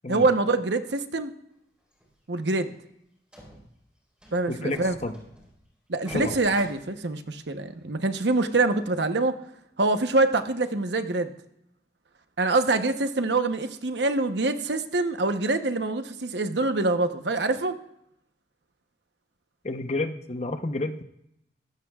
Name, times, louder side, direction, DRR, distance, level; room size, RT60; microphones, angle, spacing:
voice 1, 0.1-1.3 2.3-2.8 4.3-5.0 5.9-9.4 9.8-11.3 12.4-17.8, right 2 dB, 80° right, 8 dB, 1.0 m, -25 dB
sound 1, 1.9-2.1 2.5-2.6 2.9-3.0 3.3-3.8 4.2-5.7 6.0-7.6 8.1-8.2 8.8-8.9, equal, 5° right, 4.5 m, -46 dB
voice 2, 4.5-5.2 6.1-6.4 19.6-21.0, left 2 dB, 35° left, 8 dB, 0.8 m, -30 dB
22.0 x 16.0 x 2.4 m, 0.79 s
head